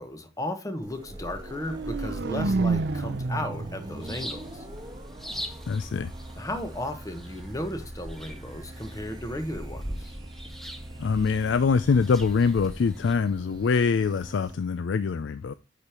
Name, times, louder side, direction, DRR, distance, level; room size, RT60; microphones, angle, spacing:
voice 1, 0.0-4.6 6.4-10.1, left 1 dB, 20° left, 1.1 m, -35 dB
sound 1, 0.8-14.5, right 1 dB, 20° right, 1.3 m, -43 dB
sound 2, 1.4-5.4, right 3 dB, 60° right, 0.5 m, -30 dB
sound 3, 4.0-13.2, equal, ahead, 0.8 m, -41 dB
voice 2, 5.7-6.1 11.0-15.5, left 5 dB, 75° left, 0.4 m, -24 dB
8.2 x 5.1 x 2.9 m
head